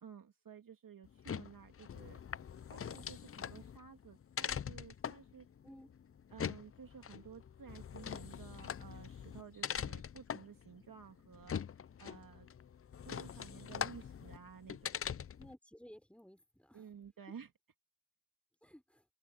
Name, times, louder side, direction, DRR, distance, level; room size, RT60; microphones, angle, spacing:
voice 1, 0.0-2.2 2.7-5.5 6.3-11.6 12.0-12.5 13.1-14.9 16.7-17.5, right 7 dB, 40° right, 2.2 m, -54 dB
sound 1, 1.1-15.5, left 8 dB, 30° left, 0.6 m, -43 dB
voice 2, 15.4-16.9 18.6-19.0, equal, ahead, 5.3 m, -56 dB
supercardioid pair, 70°, 49 cm